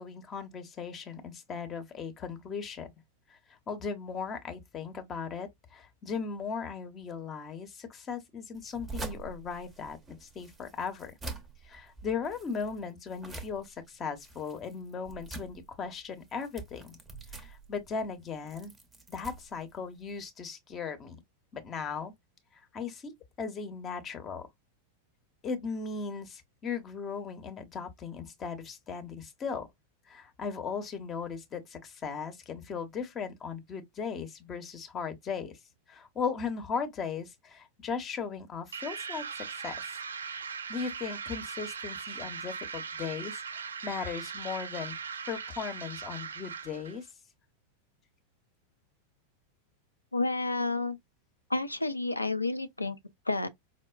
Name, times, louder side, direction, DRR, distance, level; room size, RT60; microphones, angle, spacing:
voice 1, 0.0-2.9 3.3-3.4 3.7-11.1 11.6-17.0 17.3-18.7 19.1-21.2 21.5-22.1 22.5-24.5 25.4-29.7 30.1-35.6 35.9-39.8 40.7-45.0 45.3-47.1, left 5 dB, 25° left, 0.8 m, -37 dB
sound 1, 8.5-20.3, right 3 dB, 15° right, 0.7 m, -46 dB
sound 2, 38.7-47.0, right 6 dB, 70° right, 0.3 m, -39 dB
voice 2, 50.1-51.0 51.5-53.0 53.3-53.5, left 2 dB, 85° left, 0.4 m, -30 dB
4.7 x 2.1 x 2.3 m
figure-of-eight pair, 90°, 0 cm